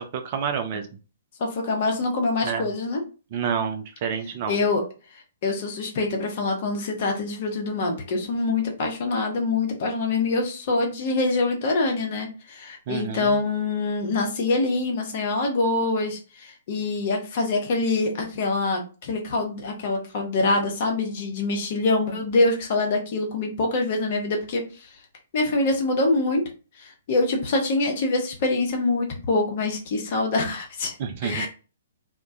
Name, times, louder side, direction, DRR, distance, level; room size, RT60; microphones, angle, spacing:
voice 1, 0.1-0.8 2.4-2.7 3.3-4.6 12.9-13.3 31.0-31.5, right 7 dB, 40° right, 7 dB, 0.3 m, -28 dB
voice 2, 1.4-3.0 4.5-4.8 5.4-24.9 25.3-26.4 26.8-30.9 31.2-31.5, left 3 dB, 45° left, 2 dB, 0.7 m, -25 dB
2.2 x 2.1 x 2.6 m, 0.34 s
figure-of-eight pair, 120°, 0 cm